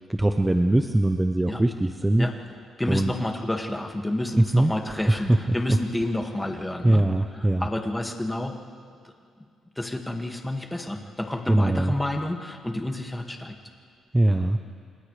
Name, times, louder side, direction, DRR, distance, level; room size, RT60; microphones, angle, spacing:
voice 1, 0.1-2.3 2.9-3.1 4.4-5.6 6.8-7.7 11.5-11.9 14.1-14.6, right 1 dB, 10° right, 6 dB, 0.8 m, -22 dB
voice 2, 2.8-7.0 7.6-8.6 9.0-9.1 9.8-13.6, left 1 dB, 10° left, 2 dB, 2.1 m, -29 dB
30.0 x 27.5 x 3.4 m, 2.2 s
cardioid pair, 90°, 0 cm